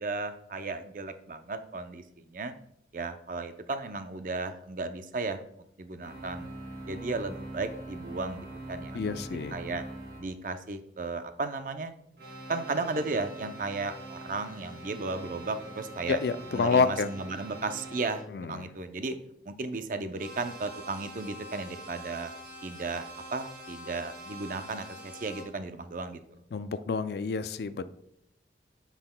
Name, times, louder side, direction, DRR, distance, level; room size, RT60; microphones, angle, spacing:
voice 1, 0.0-2.5 2.9-5.4 5.8-6.5 6.9-9.8 10.2-11.9 12.5-16.2 16.5-19.2 19.4-22.3 22.6-23.0 23.3-26.2, right 3 dB, 45° right, 9 dB, 0.5 m, -35 dB
sound 1, 6.0-10.2 12.2-18.2 20.2-25.4, right 1 dB, 65° right, 2.1 m, -44 dB
voice 2, 8.9-9.6 16.1-17.1 18.3-18.7 26.5-27.8, left 5 dB, 65° left, 13 dB, 0.4 m, -28 dB
9.7 x 5.7 x 2.2 m, 0.73 s
head